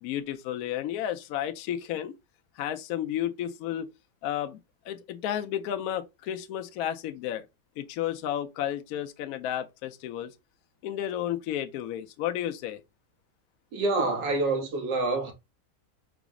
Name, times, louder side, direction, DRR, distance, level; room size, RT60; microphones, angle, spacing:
voice 1, 0.0-2.1 2.6-3.9 4.2-4.6 4.8-7.4 7.8-10.3 10.8-12.8, left 11 dB, 70° left, 0.9 m, -32 dB
voice 2, 13.7-15.3, right 3 dB, 85° right, 1.6 m, -27 dB
4.9 x 2.0 x 3.5 m
omnidirectional pair, 1.8 m